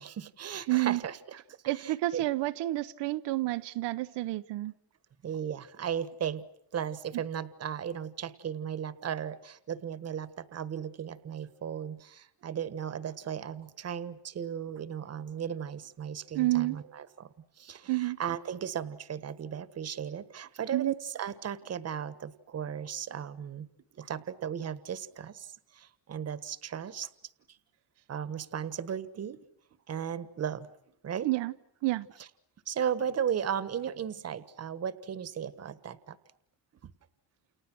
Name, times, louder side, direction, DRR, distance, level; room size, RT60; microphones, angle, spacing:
voice 1, 0.0-2.2 5.2-6.4 6.7-17.3 17.6-23.7 23.9-27.1 28.1-29.4 29.9-30.7 31.0-31.3 32.2-32.3 32.7-36.2 36.8-36.9, right 8 dB, 35° right, 1.4 m, -36 dB
voice 2, 0.7-1.0 1.7-4.7 16.3-16.8 17.9-18.2 20.7-20.9 31.2-31.5 31.8-32.1, right 18 dB, 85° right, 1.0 m, -29 dB
29.5 x 29.5 x 6.2 m
cardioid pair, 150°, 41 cm